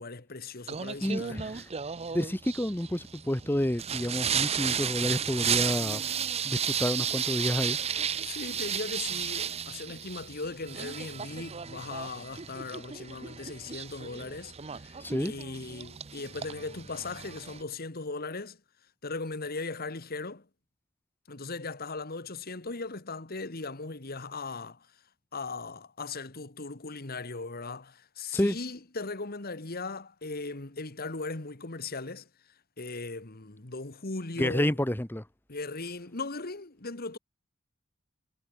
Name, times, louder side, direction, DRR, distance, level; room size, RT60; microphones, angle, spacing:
voice 1, 0.0-1.4 8.2-18.6 19.0-20.5 21.3-25.0 25.3-34.8 35.5-37.2, left 3 dB, 50° left, 1.9 m, -38 dB
Singing, 0.7-17.6, right 8 dB, 30° right, 0.8 m, -34 dB
voice 2, 1.0-1.6 2.1-6.0 6.4-7.8 15.0-15.3 28.3-28.5 34.4-35.2, left 1 dB, 10° left, 1.4 m, -29 dB
head